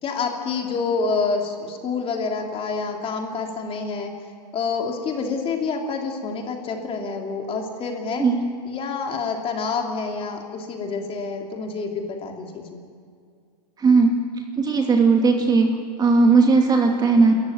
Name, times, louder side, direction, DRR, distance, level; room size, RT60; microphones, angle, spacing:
voice 1, 0.0-4.1 4.5-8.2 8.6-12.8, left 4 dB, 25° left, 2 dB, 3.2 m, -27 dB
voice 2, 13.8-14.1 14.6-15.7 16.0-17.3, right 4 dB, 20° right, 2 dB, 2.6 m, -17 dB
26.5 x 14.5 x 9.6 m, 2.2 s
hypercardioid pair, 125°, 21 cm